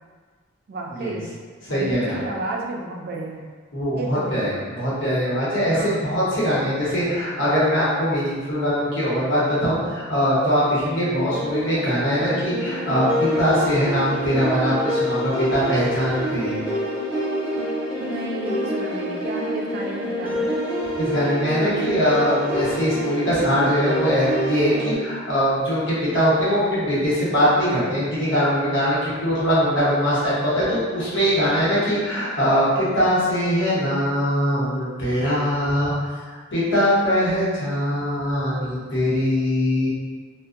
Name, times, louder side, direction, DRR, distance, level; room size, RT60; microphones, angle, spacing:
voice 1, 0.7-1.3 1.7-3.5 3.9-4.4 5.7-6.1 18.0-20.6, right 2 dB, 50° right, -1 dB, 0.4 m, -31 dB
voice 2, 1.6-2.2 3.7-16.6 21.0-35.9 36.3-39.9, equal, 65° left, -9 dB, 1.0 m, -22 dB
sound 1, 10.8-25.0, equal, 10° right, 0.7 m, -27 dB
2.5 x 2.1 x 2.5 m, 1.5 s
head